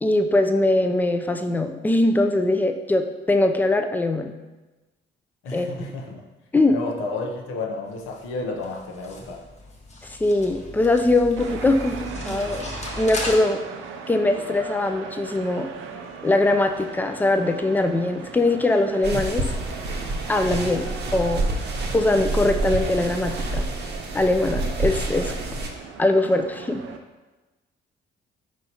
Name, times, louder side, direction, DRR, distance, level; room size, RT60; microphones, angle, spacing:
voice 1, 0.0-4.3 5.5-5.7 6.5-6.8 10.0-12.7 12.9-13.6 14.1-15.7 16.2-19.5 20.3-21.4 21.9-23.6 24.1-25.3 26.0-26.8, left 2 dB, 10° left, 6 dB, 0.3 m, -21 dB
voice 2, 5.4-6.3 6.7-9.4, left 3 dB, 90° left, 1 dB, 0.7 m, -31 dB
sound 1, 7.9-13.4, left 2 dB, 35° left, 0.9 m, -36 dB
sound 2, 11.4-27.0, right 6 dB, 90° right, 0.5 m, -39 dB
sound 3, 19.0-25.7, right 2 dB, 60° right, 0.7 m, -28 dB
4.7 x 4.0 x 2.8 m, 1.2 s
cardioid pair, 90°, 20 cm